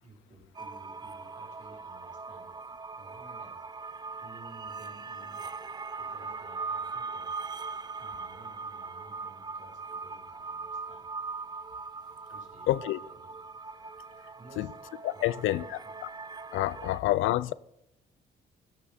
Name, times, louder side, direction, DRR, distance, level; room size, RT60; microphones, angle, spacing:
voice 1, 0.0-2.5 2.9-3.6 4.2-5.4 6.0-7.4 8.0-11.0 12.3-12.7 13.0-13.4 14.4-14.7 15.1-15.9 16.8-16.9, right 3 dB, 40° right, 4.1 m, -54 dB
sound 1, 0.5-17.0, right 4 dB, 20° right, 0.4 m, -40 dB
voice 2, 12.7-13.0 14.6-14.7 15.0-15.6 16.5-17.5, left 16 dB, 85° left, 0.4 m, -27 dB
14.0 x 5.6 x 4.9 m
cardioid pair, 90°, 20 cm